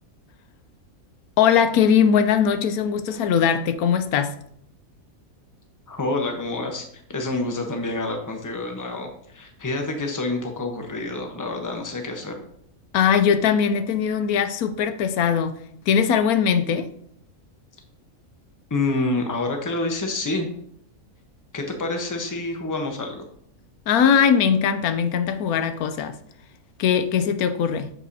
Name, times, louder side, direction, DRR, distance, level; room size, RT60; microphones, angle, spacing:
voice 1, 1.4-4.3 12.9-15.5 15.9-16.9 23.9-26.2 26.8-27.9, left 7 dB, 90° left, 1.1 m, -20 dB
voice 2, 5.9-12.3 18.7-20.5 21.5-23.2, left 2 dB, 15° left, 0.8 m, -28 dB
7.4 x 7.0 x 2.7 m
omnidirectional pair, 1.5 m